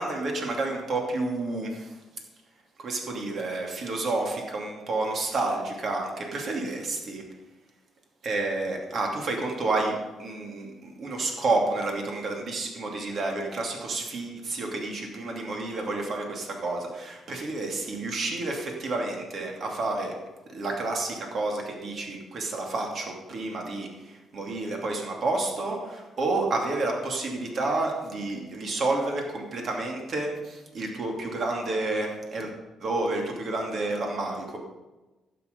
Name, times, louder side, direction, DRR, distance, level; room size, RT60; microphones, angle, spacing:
voice 1, 0.0-2.0 2.8-7.2 8.2-20.2 20.5-32.5 32.8-34.6, right 2 dB, 55° right, 1 dB, 2.7 m, -30 dB
12.0 x 9.2 x 5.3 m, 1.1 s
cardioid pair, 90°, 0 cm